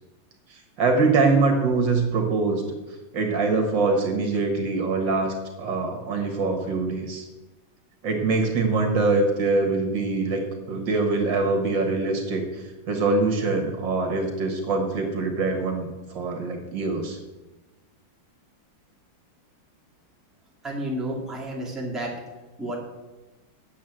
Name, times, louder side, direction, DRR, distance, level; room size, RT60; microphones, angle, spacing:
voice 1, 0.5-2.6 3.1-7.3 8.0-10.4 10.7-17.2, right 3 dB, 70° right, 4 dB, 2.1 m, -24 dB
voice 2, 20.6-22.1 22.6-22.8, right 1 dB, ahead, -4 dB, 2.0 m, -31 dB
8.3 x 7.0 x 7.6 m, 1.1 s
omnidirectional pair, 2.2 m